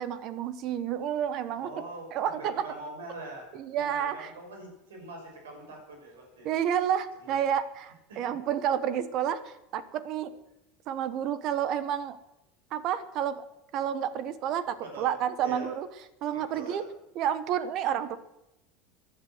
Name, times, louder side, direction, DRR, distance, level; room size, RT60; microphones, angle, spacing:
voice 1, 0.0-1.7 2.1-2.6 3.5-4.3 6.4-10.4 10.9-12.2 12.7-13.4 13.7-15.9 16.2-16.8 17.1-18.2, right 9 dB, 50° right, 15 dB, 1.2 m, -30 dB
voice 2, 1.6-3.5 3.7-6.5 7.2-7.4 8.1-8.2 14.9-15.1 15.4-15.7 16.2-16.8, right 2 dB, 75° right, 3 dB, 6.0 m, -43 dB
15.5 x 10.5 x 8.0 m, 0.88 s
hypercardioid pair, 75°, 0 cm